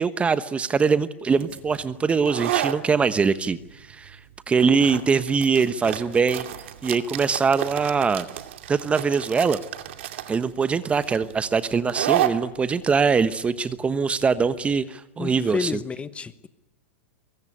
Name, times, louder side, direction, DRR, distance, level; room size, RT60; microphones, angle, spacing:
voice 1, 0.0-4.2 4.5-6.4 6.8-8.3 8.7-9.6 10.3-15.8, right 5 dB, 15° right, 13 dB, 1.1 m, -22 dB
sound 1, 1.4-14.8, right 12 dB, 65° right, 2.4 m, -32 dB
voice 2, 15.2-16.5, left 5 dB, 15° left, 13 dB, 1.3 m, -30 dB
23.5 x 22.0 x 9.8 m, 0.90 s
hypercardioid pair, 105°, 7 cm